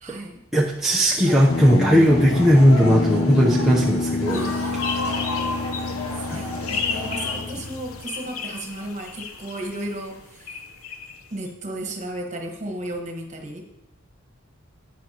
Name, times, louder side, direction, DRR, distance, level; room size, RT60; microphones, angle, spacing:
voice 1, 0.0-0.4 4.3-5.2 5.9-6.0 6.3-10.6 11.3-13.6, right 1 dB, 35° right, 2 dB, 1.4 m, -34 dB
voice 2, 0.5-4.4 6.3-6.4, equal, ahead, -5 dB, 0.7 m, -17 dB
sound 1, 1.2-7.4, left 1 dB, 85° left, 1.5 m, -34 dB
Guitar, 1.5-8.0, left 3 dB, 30° left, 0.4 m, -28 dB
sound 2, 4.3-11.2, left 4 dB, 70° left, 0.8 m, -32 dB
10.5 x 9.1 x 2.9 m, 0.85 s
head